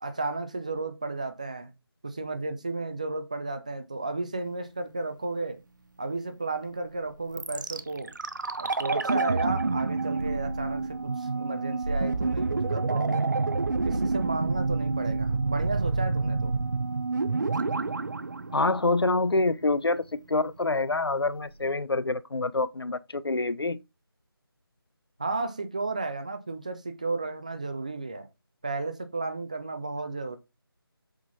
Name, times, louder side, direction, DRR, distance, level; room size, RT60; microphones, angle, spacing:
voice 1, 0.0-1.7 2.0-5.6 6.0-8.1 8.6-13.3 13.8-16.5 25.2-28.3 28.6-30.4, right 3 dB, 20° right, 0.5 m, -33 dB
sound 1, 7.4-19.4 19.6-19.7, right 3 dB, 50° right, 0.8 m, -28 dB
voice 2, 18.5-23.8, left 3 dB, 80° left, 0.7 m, -26 dB
7.7 x 3.7 x 4.1 m
figure-of-eight pair, 170°, 13 cm